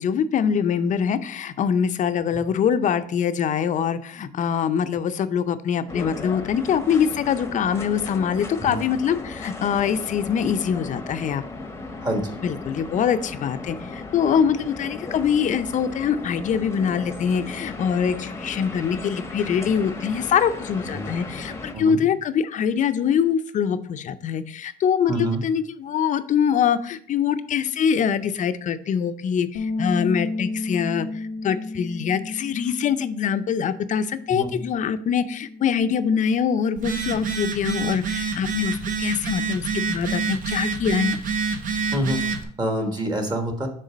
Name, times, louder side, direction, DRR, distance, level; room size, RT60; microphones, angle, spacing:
voice 1, 0.0-11.4 12.4-41.2, left 7 dB, 50° left, 11 dB, 0.5 m, -24 dB
sound 1, 5.9-21.7, left 3 dB, 15° left, 0.8 m, -36 dB
voice 2, 12.0-12.4 20.9-21.1 21.7-22.0 25.1-25.4 34.3-34.6 41.9-43.7, right 1 dB, 25° right, 3 dB, 1.3 m, -27 dB
Bass guitar, 29.5-35.8, left 2 dB, 90° left, 0.6 m, -33 dB
Telephone, 36.8-42.4, right 5 dB, 50° right, 0.9 m, -27 dB
6.6 x 3.8 x 5.0 m, 0.62 s
cardioid pair, 110°, 17 cm